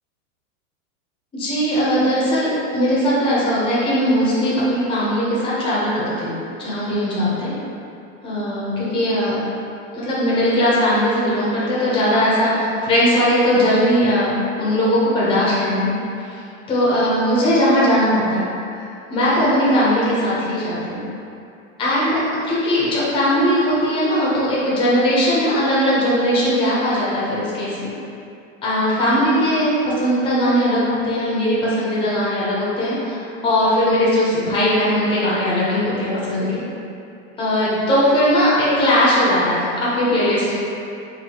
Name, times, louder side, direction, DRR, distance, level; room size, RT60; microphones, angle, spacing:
voice 1, 1.3-6.3 6.6-7.5 8.2-9.3 9.9-14.3 14.6-15.8 16.3-16.4 16.7-18.4 19.1-21.0 21.8-22.2 22.5-27.9 28.6-29.7 30.0-36.5 37.4-40.6, equal, 15° left, -8 dB, 0.7 m, -19 dB
4.0 x 2.6 x 2.9 m, 2.6 s
supercardioid pair, 155°, 41 cm